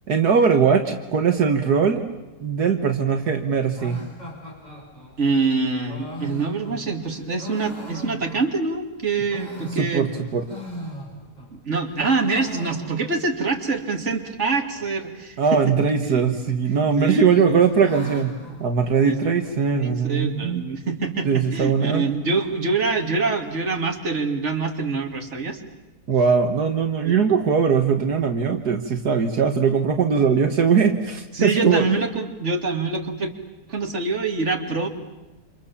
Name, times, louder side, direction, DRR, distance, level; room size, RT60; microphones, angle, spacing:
voice 1, 0.1-2.0 2.4-4.0 9.7-10.4 15.4-18.3 18.6-20.6 21.2-22.1 26.1-31.9, right 6 dB, 75° right, 5 dB, 2.1 m, -20 dB
sound 1, 3.7-8.7 9.1-11.5 11.8-13.4 13.6-13.7 13.9-14.0 14.7-15.1 16.1-16.7 17.1-19.5, equal, 25° left, 7.6 m, -39 dB
voice 2, 5.2-10.1 11.5-15.7 16.1-16.2 16.9-17.6 19.0-19.2 19.8-25.6 27.0-27.2 31.3-33.3 33.7-34.9, right 4 dB, 45° right, 4 dB, 2.9 m, -25 dB
29.0 x 27.5 x 7.3 m, 1.1 s
omnidirectional pair, 1.7 m